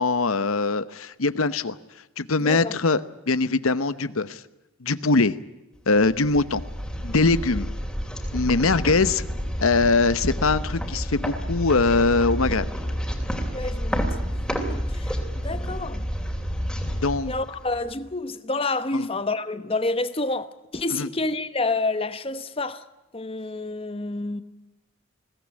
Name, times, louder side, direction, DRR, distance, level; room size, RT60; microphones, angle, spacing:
voice 1, 0.0-1.8 2.2-3.0 3.3-4.4 4.8-5.3 5.9-6.6 7.0-7.7 8.3-9.3 9.6-12.7 16.8-17.3 18.9-19.1 20.9-21.1, left 3 dB, 85° left, 1.0 m, -22 dB
voice 2, 2.4-2.7 13.5-14.2 14.5-16.1 17.3-22.8 23.1-24.4, left 2 dB, 25° left, 1.0 m, -29 dB
sound 1, 5.9-18.0, equal, 5° left, 2.9 m, -29 dB
21.5 x 17.5 x 9.8 m
head